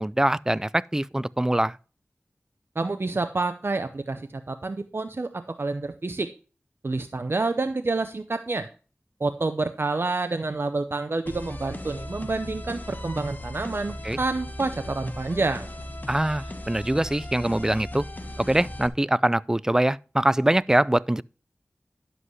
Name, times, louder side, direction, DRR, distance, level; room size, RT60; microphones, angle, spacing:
voice 1, 0.0-1.8 14.0-14.2 16.1-18.1 18.4-21.2, right 1 dB, 15° right, 0.3 m, -23 dB
voice 2, 2.8-6.3 6.8-8.7 9.2-15.7, right 3 dB, 55° right, 0.6 m, -28 dB
sound 1, 11.3-18.9, left 1 dB, 40° left, 1.3 m, -37 dB
11.0 x 7.8 x 3.1 m
wide cardioid pair, 50°, 5 cm